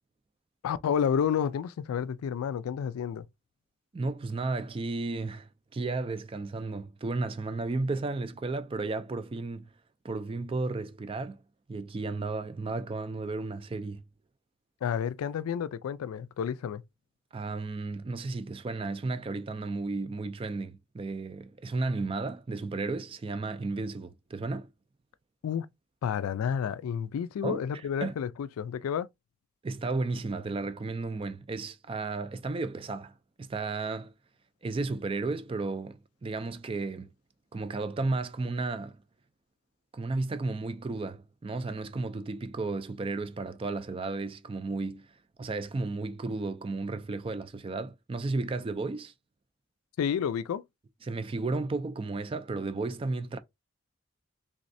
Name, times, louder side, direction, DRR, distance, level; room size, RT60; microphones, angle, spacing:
voice 1, 0.6-3.3 14.8-16.8 25.4-25.7 26.0-29.1 50.0-50.6, left 8 dB, 90° left, 0.3 m, -30 dB
voice 2, 3.9-9.7 10.0-11.4 11.7-14.0 17.3-24.7 27.4-27.6 28.0-28.1 29.6-34.1 34.6-37.1 37.5-39.0 39.9-45.1 45.4-49.1 51.0-53.4, right 3 dB, 25° right, 0.3 m, -33 dB
3.4 x 3.1 x 2.6 m
head